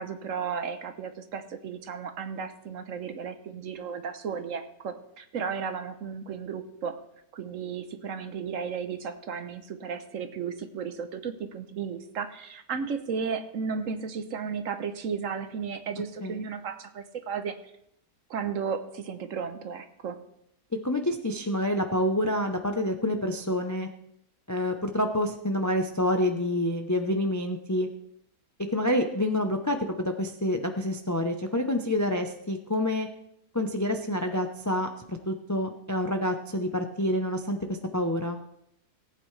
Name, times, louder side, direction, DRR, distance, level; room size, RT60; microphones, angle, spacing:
voice 1, 0.0-7.0 7.3-17.6 18.3-20.2, right 6 dB, 60° right, 9 dB, 1.2 m, -34 dB
voice 2, 20.8-23.9 24.5-27.9 28.7-33.1 33.5-38.4, left 1 dB, 25° left, 5 dB, 0.4 m, -28 dB
18.5 x 8.9 x 3.3 m, 0.77 s
omnidirectional pair, 1.6 m